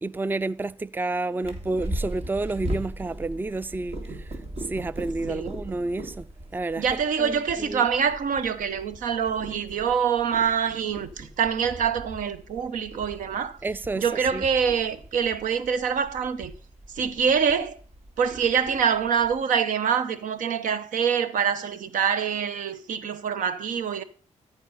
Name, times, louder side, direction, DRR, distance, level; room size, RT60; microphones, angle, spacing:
voice 1, 0.0-4.0 4.3-4.4 4.7-6.3 6.5-6.8 7.2-7.8 13.6-14.0 14.3-14.4, right 2 dB, 15° right, 0.4 m, -30 dB
Purr, 1.4-19.4, right 1 dB, 50° right, 2.3 m, -39 dB
voice 2, 6.8-13.6 14.0-16.5 16.9-17.8 18.2-24.0, right 7 dB, 85° right, 0.8 m, -25 dB
13.5 x 4.7 x 5.5 m
cardioid pair, 60°, 13 cm